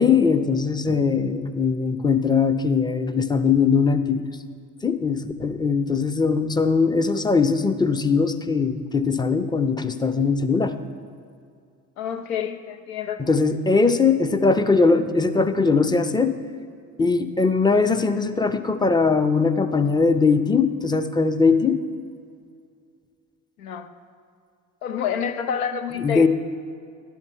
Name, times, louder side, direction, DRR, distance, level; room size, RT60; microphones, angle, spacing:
voice 1, 0.0-4.2 4.8-10.7 13.2-16.3 17.0-21.8 26.0-26.3, left 4 dB, 10° left, 9 dB, 0.5 m, -20 dB
voice 2, 12.0-13.2 23.6-23.9 24.8-26.3, left 8 dB, 80° left, 8 dB, 0.6 m, -28 dB
11.0 x 5.8 x 5.4 m, 2.3 s
figure-of-eight pair, 50°, 42 cm